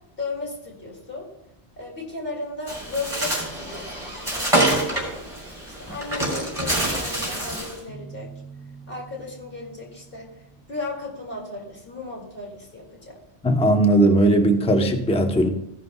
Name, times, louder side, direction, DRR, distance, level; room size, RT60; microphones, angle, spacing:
voice 1, 0.2-1.3 1.8-5.3 5.8-8.3 8.9-13.2, left 3 dB, 60° left, -2 dB, 2.7 m, -35 dB
Bird, 2.7-7.8, right 1 dB, 20° right, 3.6 m, -26 dB
sound 1, 7.9-11.6, right 4 dB, 75° left, 3.5 m, -46 dB
voice 2, 13.4-15.5, right 1 dB, 5° left, 4 dB, 0.7 m, -18 dB
15.5 x 11.0 x 2.3 m, 0.84 s
omnidirectional pair, 1.1 m